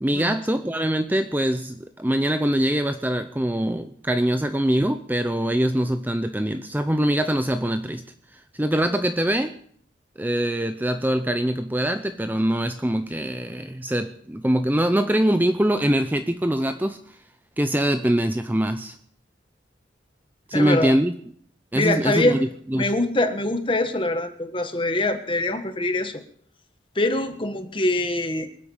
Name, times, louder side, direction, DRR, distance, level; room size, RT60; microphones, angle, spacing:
voice 1, 0.0-8.0 8.3-9.6 10.2-17.2 17.6-19.0 20.5-21.1 21.7-22.9, right 1 dB, 10° right, 8 dB, 0.5 m, -23 dB
voice 2, 20.5-20.9 21.7-22.4 22.8-26.1 26.9-28.5, left 2 dB, 25° left, 7 dB, 1.4 m, -24 dB
25.0 x 8.3 x 5.5 m, 0.63 s
head